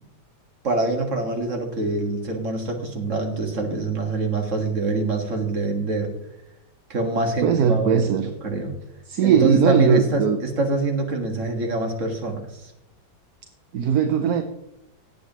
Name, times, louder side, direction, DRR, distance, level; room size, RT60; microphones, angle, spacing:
voice 1, 0.6-6.1 6.9-8.1 8.4-8.8 9.2-12.7, right 2 dB, 45° right, 3 dB, 2.0 m, -25 dB
voice 2, 7.4-8.3 9.1-10.4 13.7-14.4, right 8 dB, 65° right, 7 dB, 1.1 m, -19 dB
18.0 x 8.3 x 3.0 m, 0.88 s
omnidirectional pair, 2.0 m